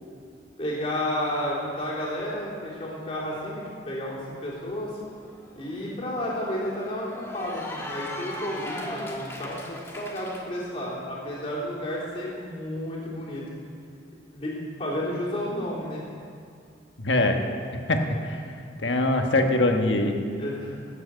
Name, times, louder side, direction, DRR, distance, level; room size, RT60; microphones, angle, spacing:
voice 1, 0.6-5.0 5.5-13.4 14.3-16.0 20.3-20.9, left 1 dB, 30° left, -7 dB, 3.4 m, -32 dB
Cheering / Applause, 5.0-10.4, left 1 dB, 15° left, 1.3 m, -39 dB
voice 2, 17.0-17.4 17.9-18.4 18.8-20.2, left 2 dB, 80° left, 4 dB, 1.3 m, -23 dB
17.0 x 7.6 x 6.6 m, 2.3 s
head